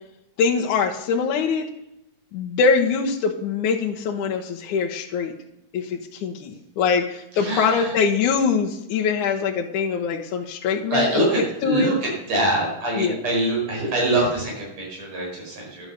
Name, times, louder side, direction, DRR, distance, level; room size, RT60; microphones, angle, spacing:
voice 1, 0.4-1.7 2.3-5.3 5.7-11.9 13.0-13.2, left 5 dB, 70° left, -2 dB, 2.4 m, -23 dB
voice 2, 7.4-7.9 10.9-15.9, right 1 dB, 50° right, -2 dB, 6.2 m, -24 dB
12.0 x 9.7 x 6.7 m, 0.85 s
omnidirectional pair, 3.8 m